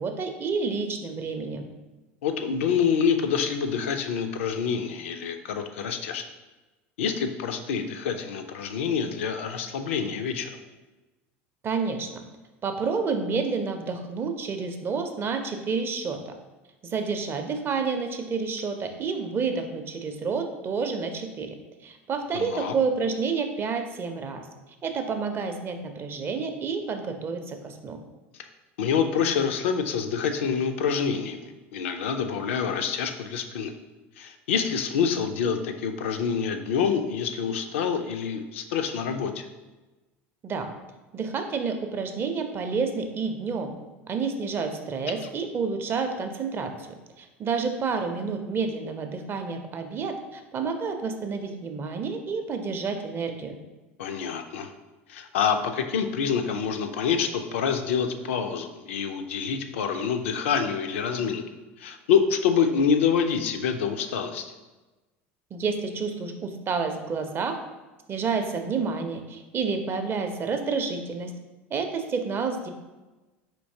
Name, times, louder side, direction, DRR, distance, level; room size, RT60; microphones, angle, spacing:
voice 1, 0.0-1.7 11.6-12.2 12.6-16.3 16.8-21.5 21.8-24.4 24.8-28.0 40.4-40.7 41.1-43.7 44.1-46.9 47.2-53.6 65.5-67.6 68.1-71.3 71.7-72.7, right 5 dB, 35° right, 6 dB, 0.5 m, -29 dB
voice 2, 2.2-6.2 7.0-10.6 22.3-22.7 28.8-33.7 34.2-39.5 54.0-54.7 55.1-61.4 61.8-64.4, left 6 dB, 75° left, 6 dB, 0.4 m, -26 dB
4.4 x 2.8 x 2.7 m, 1.1 s
hypercardioid pair, 75°, 7 cm